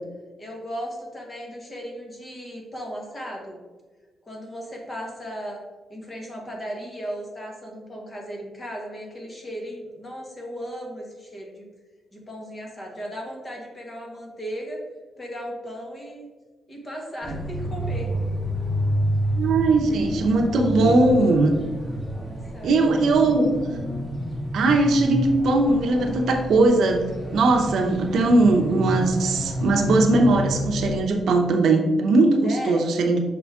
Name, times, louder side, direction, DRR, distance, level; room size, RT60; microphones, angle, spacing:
voice 1, 0.4-3.6 4.2-5.6 5.9-11.7 12.1-14.8 15.2-16.3 16.7-18.1 22.1-23.1 23.4-23.5 32.4-32.9, equal, 20° left, -1 dB, 1.3 m, -36 dB
sound 1, 17.2-31.0, equal, ahead, 1.4 m, -29 dB
voice 2, 19.3-21.6 22.6-23.5 24.5-33.2, right 2 dB, 70° right, 3 dB, 0.7 m, -19 dB
6.1 x 4.8 x 3.6 m, 1.3 s
wide cardioid pair, 175°, 0 cm